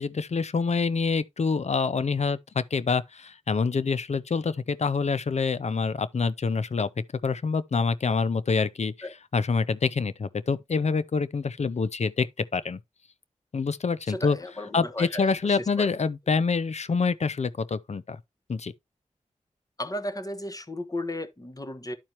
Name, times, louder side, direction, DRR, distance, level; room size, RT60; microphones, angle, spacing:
voice 1, 0.0-6.9 7.2-9.1 9.3-12.3 12.5-12.8 13.5-14.4 14.7-18.2 18.5-18.7, left 4 dB, 55° left, 0.6 m, -26 dB
voice 2, 14.1-15.9 19.8-21.9, left 1 dB, 25° left, 1.2 m, -35 dB
12.0 x 4.3 x 2.9 m
cardioid pair, 45°, 13 cm